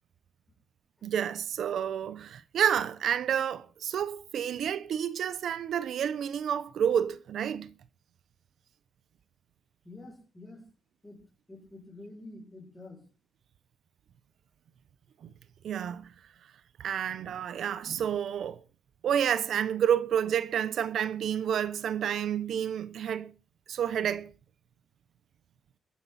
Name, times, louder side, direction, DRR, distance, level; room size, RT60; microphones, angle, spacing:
voice 1, 1.0-7.7 15.2-15.3 15.6-16.1 16.8-18.6 19.0-23.3 23.7-24.3, right 9 dB, 70° right, 0.8 m, -29 dB
voice 2, 9.8-10.6 11.0-11.2 11.5-13.0, left 2 dB, 15° left, 7.1 m, -47 dB
22.0 x 9.7 x 4.2 m
cardioid pair, 115°, 0 cm